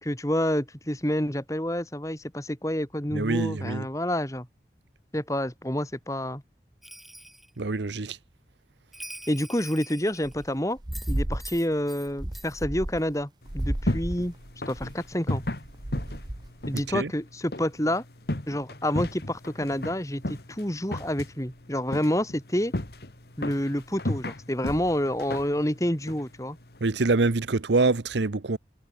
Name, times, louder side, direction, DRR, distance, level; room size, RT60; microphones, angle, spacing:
voice 1, 0.0-4.5 5.1-6.4 9.3-10.8 11.1-14.3 14.7-15.4 16.7-18.0 18.5-22.7 23.4-26.6, equal, 20° left, 2.8 m, -28 dB
voice 2, 3.1-3.9 7.6-8.2 16.7-17.1 26.8-28.6, right 3 dB, 90° right, 0.9 m, -25 dB
Bell, 6.8-7.5 8.9-10.4 10.9-12.1 12.3-12.6, equal, ahead, 6.9 m, -44 dB
sound 1, 10.2-10.5 10.8-11.7 12.1-13.2 13.5-16.6, right 1 dB, 25° right, 0.9 m, -33 dB
sound 2, 13.4-26.9, left 1 dB, 65° left, 2.0 m, -36 dB
head